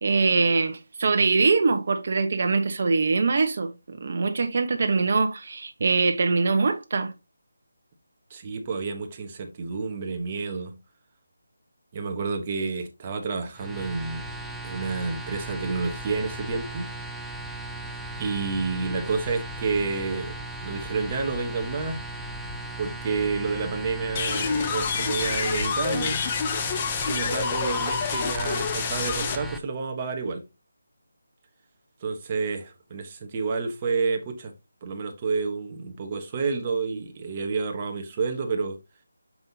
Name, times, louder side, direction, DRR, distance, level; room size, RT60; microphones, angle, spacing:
voice 1, 0.0-7.1, right 4 dB, 45° right, 1.2 m, -23 dB
voice 2, 8.3-10.8 11.9-14.3 14.6-16.9 18.2-20.3 20.6-22.0 22.8-26.2 26.6-30.4 32.0-34.5 34.8-38.8, right 4 dB, 25° right, 1.3 m, -29 dB
sound 1, 13.5-29.6, right 1 dB, ahead, 0.5 m, -37 dB
sound 2, 24.2-29.4, left 6 dB, 25° left, 0.9 m, -27 dB
7.6 x 5.6 x 2.9 m
figure-of-eight pair, 165°, 0 cm